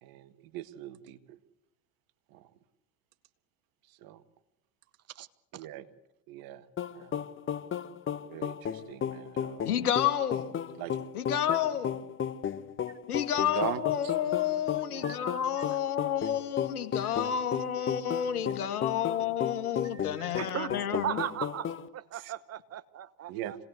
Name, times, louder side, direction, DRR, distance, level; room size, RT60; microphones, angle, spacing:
voice 1, 0.0-1.4 2.3-2.5 3.9-4.2 5.5-5.9 6.3-6.7 6.9-7.3 8.2-9.7 10.8-11.0 13.4-14.1 14.9-15.1 18.4-18.5 22.1-22.3 23.3-23.5, right 13 dB, 50° right, 10 dB, 1.8 m, -41 dB
sound 1, 6.8-21.9, left 8 dB, 25° left, 1.2 m, -34 dB
voice 2, 9.6-10.5 11.1-12.0 13.1-21.2, left 10 dB, 80° left, 8 dB, 2.4 m, -30 dB
voice 3, 19.8-23.6, right 11 dB, 35° right, 14 dB, 1.3 m, -38 dB
26.0 x 19.0 x 8.0 m, 0.92 s
hypercardioid pair, 85°, 44 cm